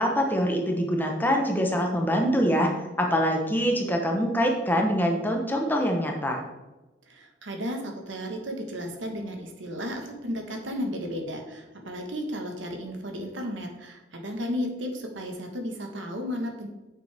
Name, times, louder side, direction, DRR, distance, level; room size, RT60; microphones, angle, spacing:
voice 1, 0.0-2.7 3.0-6.4, equal, 10° left, 1 dB, 0.9 m, -24 dB
voice 2, 7.1-16.7, equal, 70° right, 3 dB, 1.4 m, -34 dB
9.0 x 6.5 x 3.5 m, 1.1 s
head